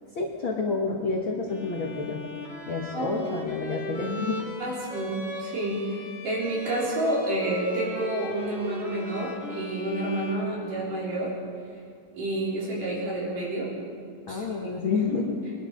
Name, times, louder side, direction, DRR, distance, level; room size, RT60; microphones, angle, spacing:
voice 1, 0.1-2.2 2.7-4.4 14.3-15.4, left 4 dB, 55° left, -2 dB, 1.6 m, -29 dB
Bowed string instrument, 1.5-11.2, equal, ahead, 2.0 m, -38 dB
voice 2, 2.9-3.3 4.6-11.3 12.1-13.7 14.3-14.4 15.1-15.2, right 1 dB, 75° right, -5 dB, 5.2 m, -29 dB
21.5 x 11.5 x 5.2 m, 2.3 s
omnidirectional pair, 3.8 m